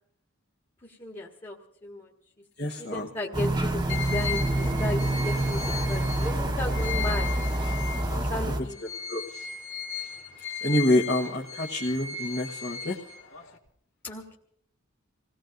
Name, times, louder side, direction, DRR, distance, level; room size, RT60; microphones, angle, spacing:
voice 1, 0.8-2.1 2.8-7.3 8.1-8.8 14.0-14.4, left 1 dB, 25° left, 0 dB, 1.6 m, -35 dB
voice 2, 2.6-3.0 8.1-8.2 9.1-9.2 10.6-13.0, left 1 dB, 50° left, -2 dB, 1.3 m, -26 dB
sound 1, 3.3-8.6, right 1 dB, 20° right, 1.1 m, -27 dB
sound 2, 3.9-8.3 8.7-13.6, left 6 dB, 70° left, 1.9 m, -37 dB
28.0 x 18.0 x 2.6 m, 0.69 s
head